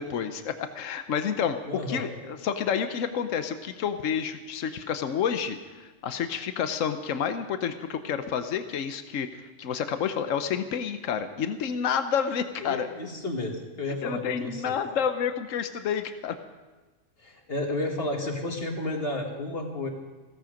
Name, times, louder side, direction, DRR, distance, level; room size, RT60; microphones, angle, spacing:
voice 1, 0.0-1.6 1.9-12.9 14.0-16.3, left 7 dB, 80° left, 9 dB, 1.2 m, -29 dB
voice 2, 1.7-2.1 12.6-15.0 17.2-19.9, left 2 dB, 50° left, 2 dB, 2.1 m, -32 dB
16.5 x 14.5 x 5.1 m, 1.2 s
omnidirectional pair, 1.3 m